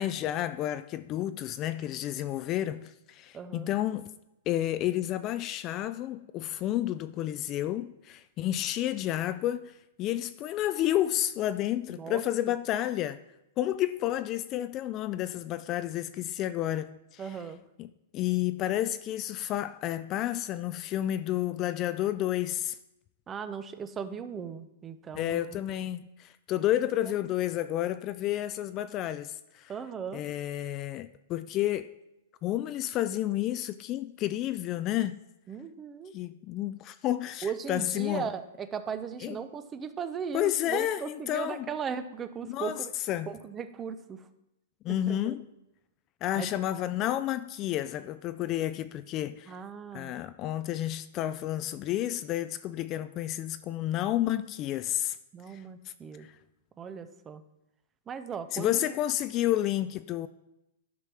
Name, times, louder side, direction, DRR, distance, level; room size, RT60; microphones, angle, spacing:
voice 1, 0.0-4.1 4.5-13.2 13.6-17.4 17.8-17.9 18.1-22.8 25.1-29.7 30.1-31.9 32.4-35.2 36.1-38.3 39.2-39.4 40.3-41.7 42.5-42.8 43.1-43.3 44.8-45.4 46.2-49.6 49.9-55.2 55.5-55.6 56.2-56.3 58.5-60.3, left 13 dB, 30° left, 0.3 m, -31 dB
voice 2, 3.3-3.7 11.9-12.2 17.2-17.6 23.3-25.6 29.7-30.2 35.5-36.1 37.4-42.9 43.3-44.2 44.9-45.3 46.3-46.5 49.5-50.1 55.3-56.3 56.8-57.4 58.1-59.0, right 7 dB, 20° right, 0.6 m, -37 dB
11.0 x 5.9 x 4.8 m
hypercardioid pair, 150°, 0 cm